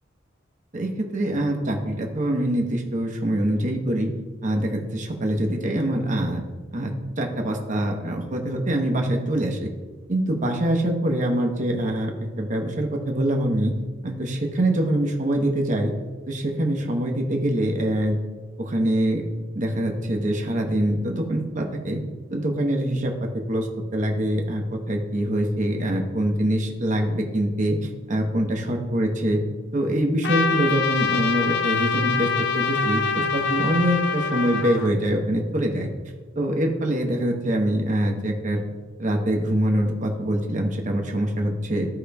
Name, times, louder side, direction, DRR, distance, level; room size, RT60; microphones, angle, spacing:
voice 1, 0.7-4.1 4.4-6.4 6.7-9.7 10.1-12.1 12.4-13.7 14.0-15.9 16.3-18.2 18.6-19.2 19.5-22.0 22.3-27.8 28.1-29.4 29.7-35.9 36.4-38.6 39.0-41.9, right 1 dB, 40° right, 2 dB, 0.9 m, -24 dB
Trumpet, 30.2-34.9, left 5 dB, 60° left, 0.5 m, -25 dB
14.5 x 5.0 x 2.3 m, 1.3 s
head